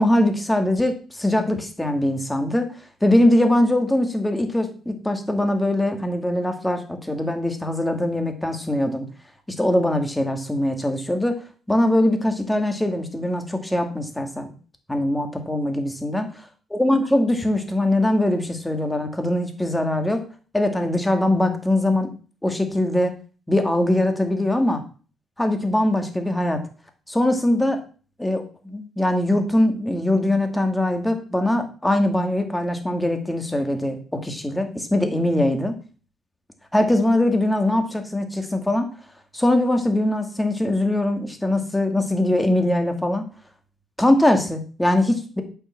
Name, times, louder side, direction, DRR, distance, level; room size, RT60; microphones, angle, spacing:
voice 1, 0.0-2.7 3.0-9.1 9.5-11.4 11.7-14.5 14.9-16.3 16.7-20.2 20.5-22.1 22.4-23.1 23.5-24.8 25.4-26.7 27.1-27.8 28.2-35.7 36.7-38.9 39.3-43.3 44.0-45.4, left 1 dB, 10° left, 5 dB, 2.2 m, -22 dB
8.6 x 5.8 x 7.2 m, 0.38 s
cardioid pair, 90°, 0 cm